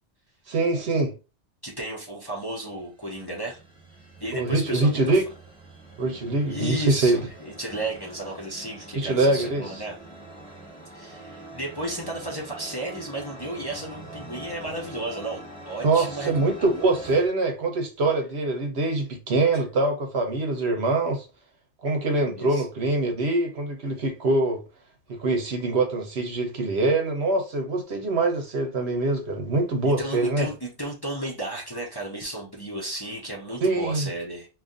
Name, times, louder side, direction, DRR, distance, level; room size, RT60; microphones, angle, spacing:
voice 1, 0.5-1.1 4.3-5.2 6.0-7.2 8.9-9.7 15.8-21.3 21.8-24.6 25.1-30.5 33.6-34.1, right 2 dB, 65° right, 1.0 m, -24 dB
voice 2, 1.6-3.6 4.2-5.2 6.5-9.9 10.9-16.5 22.3-22.6 29.8-34.5, right 1 dB, 25° left, 0.8 m, -33 dB
sound 1, 2.7-17.3, right 2 dB, 5° right, 1.2 m, -44 dB
2.7 x 2.5 x 3.7 m
omnidirectional pair, 1.2 m